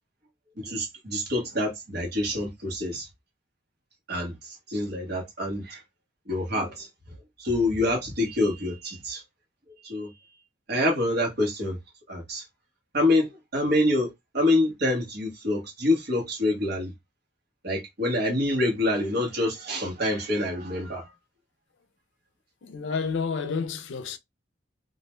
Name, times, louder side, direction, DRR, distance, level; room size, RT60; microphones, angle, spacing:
voice 1, 0.6-3.1 4.1-5.8 6.3-6.9 7.4-9.2 9.8-10.1 10.7-11.8 12.1-12.4 12.9-16.9 17.6-21.1, left 1 dB, 60° right, 1.1 m, -26 dB
voice 2, 22.6-24.2, left 5 dB, 80° left, 0.4 m, -30 dB
2.5 x 2.1 x 3.0 m
head